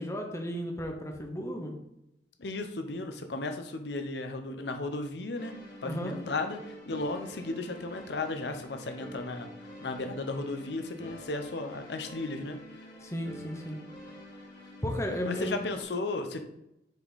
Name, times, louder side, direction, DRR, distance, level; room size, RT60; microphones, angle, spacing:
voice 1, 0.0-1.8 5.8-6.2 13.0-13.8 14.8-15.6, equal, 15° left, 2 dB, 1.0 m, -34 dB
voice 2, 2.4-5.5 5.8-12.8 15.2-16.4, left 2 dB, 75° left, 6 dB, 0.7 m, -35 dB
sound 1, 5.4-15.8, equal, 50° left, 2.4 m, -47 dB
6.5 x 5.0 x 4.1 m, 0.84 s
head